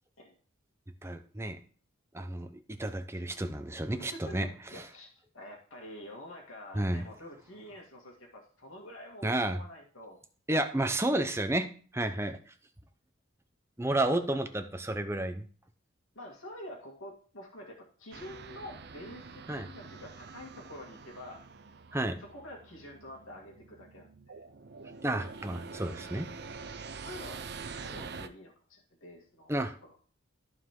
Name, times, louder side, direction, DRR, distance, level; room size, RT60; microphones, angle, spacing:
voice 1, 1.0-1.6 2.1-4.5 4.7-4.8 6.7-7.0 9.2-9.6 10.5-11.7 11.9-12.4 13.8-15.4 19.5-19.7 21.9-22.2 25.0-26.3 29.5-29.7, right 1 dB, 10° right, 7 dB, 0.7 m, -31 dB
voice 2, 4.7-10.2 11.0-11.1 16.1-21.4 22.2-24.4 27.0-27.4 27.8-29.5 29.8-30.0, left 1 dB, 75° left, -1 dB, 2.2 m, -47 dB
sound 1, 18.1-28.3, right 4 dB, 50° right, 0.5 m, -46 dB
13.5 x 4.7 x 3.8 m, 0.42 s
head